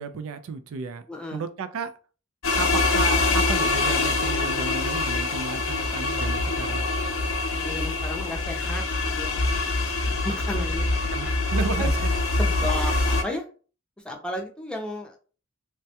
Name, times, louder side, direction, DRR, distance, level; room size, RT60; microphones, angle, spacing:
voice 1, 0.0-1.0 1.3-1.9 2.6-6.9 11.1-12.2, right 5 dB, 85° right, 10 dB, 0.4 m, -33 dB
voice 2, 1.1-1.4 7.5-9.4 10.0-11.1 11.8-11.9 12.4-13.4 14.0-15.2, left 1 dB, 5° left, 1 dB, 0.5 m, -33 dB
sound 1, 2.4-13.2, left 2 dB, 85° left, 0.6 m, -24 dB
3.3 x 2.2 x 2.7 m, 0.37 s
head